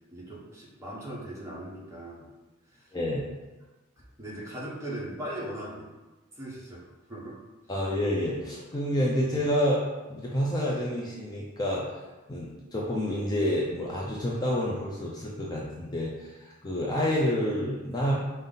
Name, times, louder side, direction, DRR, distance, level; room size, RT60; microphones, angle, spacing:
voice 1, 0.1-2.3 2.7-2.9 4.2-5.9 6.3-7.4, right 1 dB, 15° right, -5 dB, 1.0 m, -39 dB
voice 2, 2.9-3.2 7.7-9.8 10.1-12.0 12.3-18.1, equal, 20° left, -5 dB, 0.5 m, -28 dB
5.4 x 2.1 x 3.8 m, 1.2 s
head